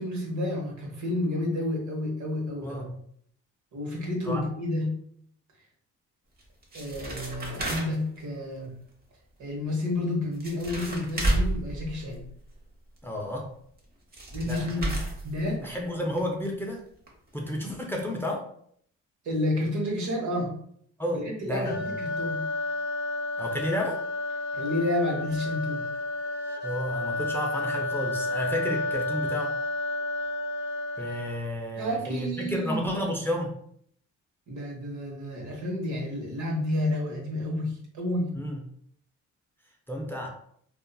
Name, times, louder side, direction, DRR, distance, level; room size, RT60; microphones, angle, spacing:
voice 1, 0.0-2.8 3.7-4.9 6.7-8.7 9.4-12.2 14.3-14.9 15.2-15.8 19.2-20.5 21.1-22.4 24.5-25.9 31.8-32.8 34.5-38.3, left 1 dB, 75° right, -1 dB, 1.0 m, -30 dB
voice 2, 2.6-3.0 4.3-4.5 13.0-13.5 14.4-14.9 15.6-16.8 17.3-18.5 21.0-21.8 23.4-24.0 26.6-29.6 31.0-33.5 38.4-38.6 39.9-40.3, equal, 10° left, 0 dB, 0.4 m, -31 dB
sound 1, 6.4-8.2 10.0-10.1 10.3-12.5 13.8-13.9 14.1-15.8 16.2-16.3 16.5-16.6 17.1-17.2 17.4-17.5, right 1 dB, 30° right, 0.7 m, -31 dB
sound 2, 21.6-31.6, left 2 dB, 75° left, 0.5 m, -31 dB
2.7 x 2.3 x 2.2 m, 0.65 s
cardioid pair, 90°, 30 cm